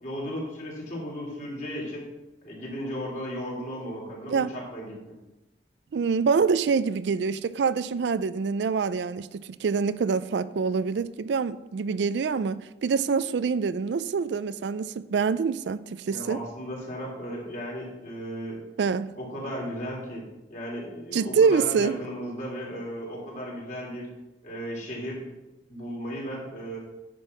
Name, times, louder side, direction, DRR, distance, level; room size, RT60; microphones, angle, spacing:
voice 1, 0.0-2.0 2.4-5.2 16.1-18.6 19.2-24.1 24.4-25.3 25.7-26.8, equal, 45° left, 3.3 m, -35 dB
voice 2, 5.9-16.4 18.8-19.1 21.1-22.0, right 5 dB, 75° right, 0.4 m, -25 dB
9.8 x 5.3 x 6.0 m
head